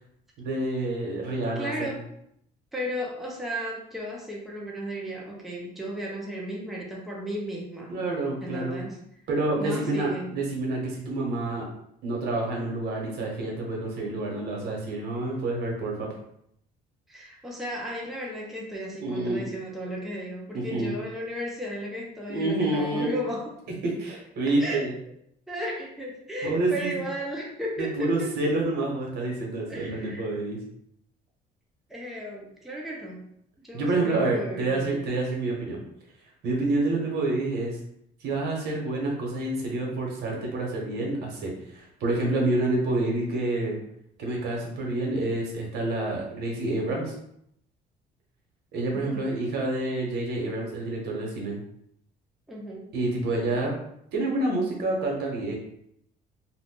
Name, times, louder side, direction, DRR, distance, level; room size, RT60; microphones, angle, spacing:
voice 1, 0.4-2.0 7.9-8.8 9.3-11.6 12.0-16.1 19.0-19.4 20.5-20.9 22.3-23.1 23.8-24.9 26.4-26.9 27.8-30.6 33.7-35.8 36.4-37.8 38.2-43.8 44.2-47.1 48.7-51.6 52.9-53.7 54.1-55.5, right 2 dB, 75° right, -1 dB, 1.1 m, -28 dB
voice 2, 1.6-2.0 2.7-7.9 8.4-9.0 9.6-10.4 17.1-23.5 24.5-24.9 25.5-28.3 29.7-30.3 31.9-33.3 33.6-35.0 48.9-49.3 52.5-52.9, equal, ahead, -3 dB, 0.7 m, -34 dB
2.5 x 2.5 x 3.7 m, 0.72 s
cardioid pair, 110°, 17 cm